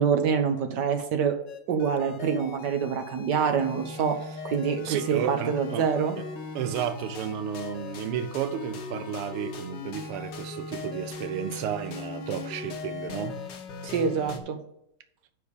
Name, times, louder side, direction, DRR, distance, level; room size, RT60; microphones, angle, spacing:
voice 1, 0.0-1.4 1.7-4.2 4.4-6.2 13.8-14.6, right 7 dB, 60° right, 1.5 m, -26 dB
sound 1, 1.5-14.4, left 4 dB, 60° left, 1.5 m, -39 dB
voice 2, 4.8-5.9 6.5-13.4, right 9 dB, 85° right, 1.6 m, -32 dB
6.4 x 5.6 x 6.9 m
omnidirectional pair, 2.4 m